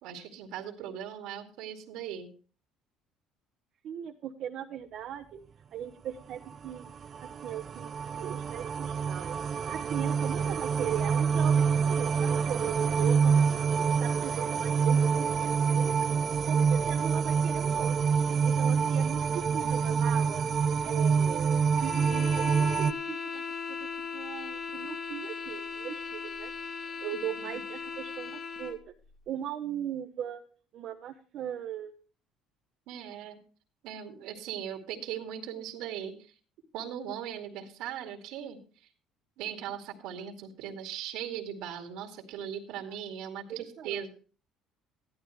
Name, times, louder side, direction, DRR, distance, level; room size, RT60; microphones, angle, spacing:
voice 1, 0.0-2.3 27.1-27.6 32.9-33.4 33.8-36.3 36.7-38.9 39.4-44.1, right 9 dB, 80° right, 3 dB, 2.3 m, -39 dB
voice 2, 3.8-5.4 5.7-6.9 7.2-9.4 9.7-13.4 14.0-15.9 16.5-18.0 18.4-20.4 20.8-26.5 27.0-28.8 29.3-30.4 30.7-31.9 42.8-43.0 43.5-44.0, right 10 dB, 60° right, 1 dB, 1.1 m, -39 dB
sound 1, 6.7-22.9, right 6 dB, 40° right, 0.5 m, -26 dB
sound 2, 21.7-28.8, left 5 dB, 40° left, 2.7 m, -38 dB
14.0 x 12.0 x 3.2 m, 0.40 s
cardioid pair, 105°, 0 cm